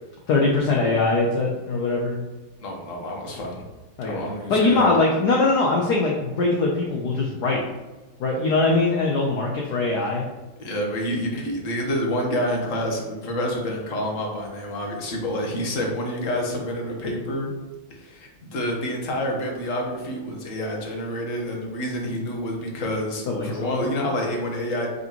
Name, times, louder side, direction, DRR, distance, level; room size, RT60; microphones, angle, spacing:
voice 1, 0.3-2.2 4.0-4.2 4.5-7.6 8.2-10.2 23.3-23.9, left 3 dB, 65° left, -1 dB, 1.3 m, -22 dB
voice 2, 2.6-3.6 4.0-4.9 10.6-17.5 17.9-24.9, equal, 45° left, 0 dB, 1.5 m, -28 dB
8.0 x 5.4 x 3.0 m, 1.2 s
omnidirectional pair, 2.1 m